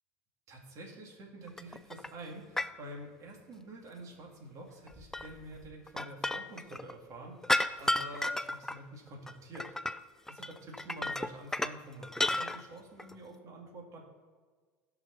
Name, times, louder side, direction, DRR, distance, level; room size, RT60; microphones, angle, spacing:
voice 1, 0.5-9.7 10.3-14.0, right 1 dB, 50° right, 0 dB, 2.9 m, -47 dB
sound 1, 1.5-2.1 2.6-2.7 4.9-6.9 7.4-8.8 9.1-10.0 10.3-11.8 12.0-12.6 13.0-13.1, left 2 dB, 5° left, 0.4 m, -33 dB
17.5 x 6.0 x 4.3 m, 1.5 s
supercardioid pair, 100°, 7 cm